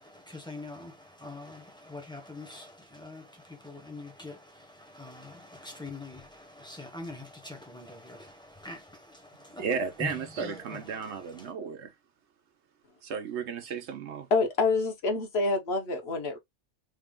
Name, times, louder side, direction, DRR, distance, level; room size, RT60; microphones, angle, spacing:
voice 1, 0.0-9.7 10.0-11.5, left 3 dB, 5° left, 0.8 m, -44 dB
voice 2, 9.6-11.9 13.0-14.3, right 6 dB, 70° right, 1.0 m, -34 dB
voice 3, 14.3-16.4, left 3 dB, 60° left, 1.1 m, -27 dB
3.4 x 2.3 x 3.6 m
omnidirectional pair, 1.2 m